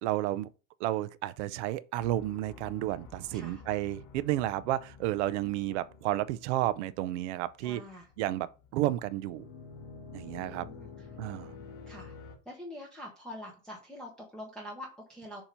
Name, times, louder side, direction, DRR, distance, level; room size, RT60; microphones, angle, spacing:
voice 1, 0.0-0.5 0.8-7.8 8.2-9.5 10.1-10.7 11.2-11.6, right 14 dB, 60° right, 0.6 m, -32 dB
sound 1, 2.0-12.4, left 5 dB, 45° left, 1.9 m, -50 dB
voice 2, 5.4-5.8 7.6-8.1 10.3-11.1 11.9-12.1 12.4-15.4, left 1 dB, ahead, 0.9 m, -45 dB
7.2 x 2.9 x 5.2 m
supercardioid pair, 150°, 39 cm